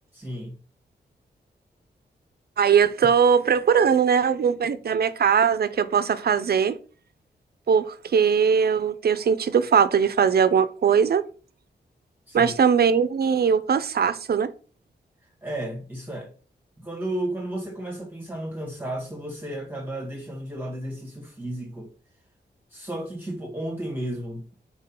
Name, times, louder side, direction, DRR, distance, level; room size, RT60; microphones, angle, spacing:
voice 1, 0.1-0.6 12.3-12.5 15.4-16.3 16.8-21.9 22.7-24.5, right 1 dB, 10° right, 1.6 m, -33 dB
voice 2, 2.6-6.8 7.7-11.2 12.3-14.5, right 7 dB, 65° right, 0.7 m, -20 dB
5.4 x 4.8 x 5.9 m
wide cardioid pair, 150°, 17 cm